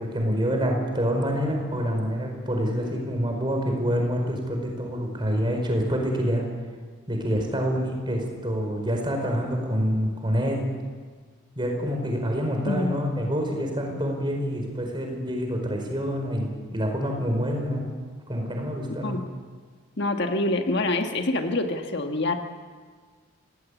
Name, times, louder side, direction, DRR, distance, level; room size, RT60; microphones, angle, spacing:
voice 1, 0.0-6.4 7.1-10.7 11.5-17.8 18.3-19.2, equal, 20° right, 2 dB, 4.8 m, -27 dB
voice 2, 12.7-13.0 19.0-19.3 20.0-22.4, left 2 dB, 50° left, 4 dB, 1.6 m, -26 dB
26.5 x 18.5 x 8.4 m, 1.5 s
head